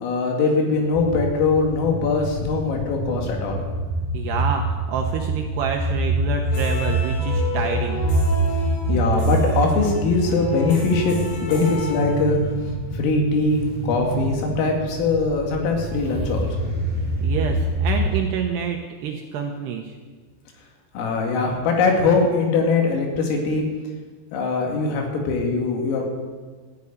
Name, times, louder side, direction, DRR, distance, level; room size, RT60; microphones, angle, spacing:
voice 1, 0.0-3.6 8.9-11.2 11.4-12.4 12.9-16.7 20.9-23.6 24.3-26.1, left 4 dB, 85° left, 1 dB, 4.8 m, -21 dB
sound 1, 0.9-18.2, right 2 dB, 15° right, 1.5 m, -26 dB
voice 2, 4.1-8.0 17.2-19.9, right 7 dB, 80° right, 3 dB, 2.5 m, -27 dB
sound 2, 6.4-12.7, left 4 dB, 55° left, 4.9 m, -33 dB
14.0 x 8.4 x 9.5 m, 1.4 s
omnidirectional pair, 5.8 m